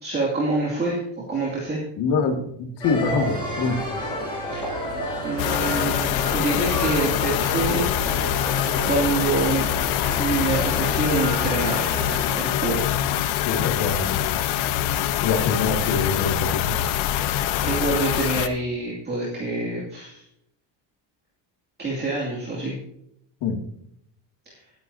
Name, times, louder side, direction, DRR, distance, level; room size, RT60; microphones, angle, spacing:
voice 1, 0.0-1.8 4.5-4.9 5.2-6.0 6.3-8.4 8.8-9.7 10.2-12.0 12.3-12.8 17.2-20.2 21.8-22.8 24.5-24.6, right 3 dB, 20° right, -4 dB, 2.5 m, -26 dB
voice 2, 2.0-3.8 13.5-14.2 15.2-16.7 23.4-23.6, left 4 dB, 60° left, 3 dB, 2.2 m, -24 dB
sound 1, 2.8-12.3, equal, 10° left, 5.3 m, -31 dB
sound 2, 5.4-18.5, left 11 dB, 85° left, 1.0 m, -24 dB
19.5 x 9.4 x 2.8 m, 0.74 s
cardioid pair, 170°, 46 cm